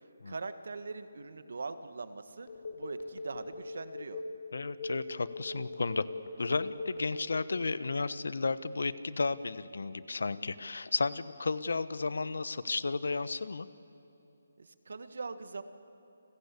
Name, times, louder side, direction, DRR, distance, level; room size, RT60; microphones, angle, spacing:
voice 1, 0.2-2.5 2.7-4.2 14.6-15.6, right 4 dB, 70° right, 10 dB, 1.6 m, -41 dB
Telephone, 2.5-7.7, left 2 dB, 50° left, 5.0 m, -41 dB
voice 2, 4.5-6.1 6.4-13.7, left 3 dB, 80° left, 15 dB, 1.1 m, -33 dB
29.5 x 21.0 x 8.4 m, 2.8 s
hypercardioid pair, 170°, 0 cm